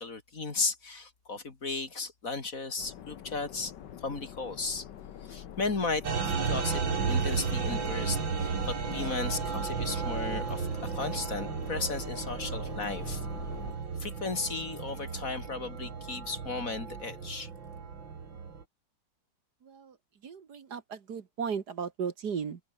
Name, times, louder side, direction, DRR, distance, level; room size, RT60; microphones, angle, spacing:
voice 1, 0.0-3.7 4.0-4.8 5.2-13.2 14.0-17.5, left 3 dB, 45° left, 3.1 m, -35 dB
sound 1, 2.8-13.7, left 10 dB, 70° left, 1.7 m, -45 dB
sound 2, 6.0-18.6, right 5 dB, 85° right, 3.3 m, -34 dB
voice 2, 19.6-20.0 20.2-22.6, right 6 dB, 60° right, 2.1 m, -36 dB
omnidirectional pair, 2.0 m